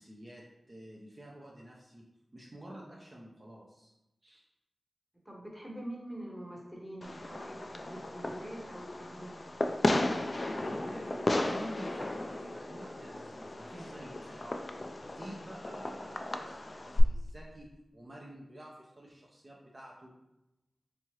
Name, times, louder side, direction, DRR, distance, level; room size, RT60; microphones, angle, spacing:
voice 1, 0.0-2.0 2.3-3.9 4.2-4.4 10.6-20.1, equal, 35° right, -3 dB, 0.5 m, -49 dB
voice 2, 5.2-9.4, right 1 dB, 10° right, -1 dB, 0.9 m, -44 dB
Fireworks, 7.0-17.0, left 2 dB, 40° left, 0.3 m, -35 dB
3.5 x 3.1 x 3.0 m, 0.91 s
wide cardioid pair, 65°, 0 cm